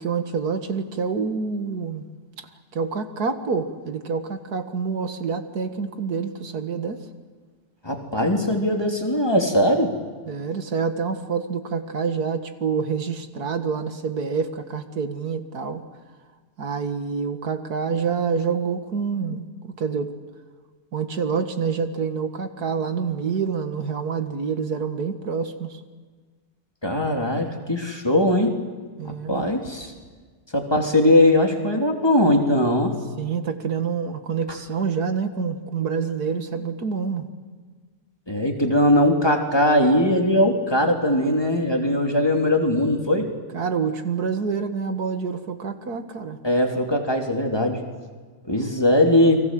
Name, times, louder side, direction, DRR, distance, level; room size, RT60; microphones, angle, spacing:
voice 1, 0.0-2.1 2.7-7.0 10.3-15.8 16.6-20.1 20.9-25.8 29.0-29.5 33.2-37.3 43.5-46.4, right 5 dB, 85° right, 8 dB, 2.2 m, -27 dB
voice 2, 7.8-9.9 26.8-28.5 29.0-29.9 30.5-33.0 38.3-43.3 46.4-47.8 48.5-49.4, left 1 dB, 15° left, 2 dB, 3.2 m, -20 dB
30.0 x 23.5 x 7.7 m, 1.5 s
omnidirectional pair, 1.6 m